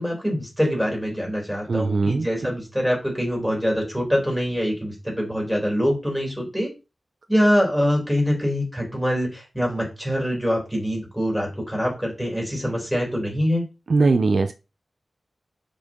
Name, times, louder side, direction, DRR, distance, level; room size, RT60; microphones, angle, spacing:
voice 1, 0.0-6.7 7.3-13.6, equal, 5° left, 4.5 m, -24 dB
voice 2, 1.7-2.3 13.9-14.5, right 3 dB, 65° right, 0.7 m, -20 dB
6.8 x 5.5 x 3.8 m
wide cardioid pair, 80°, 0 cm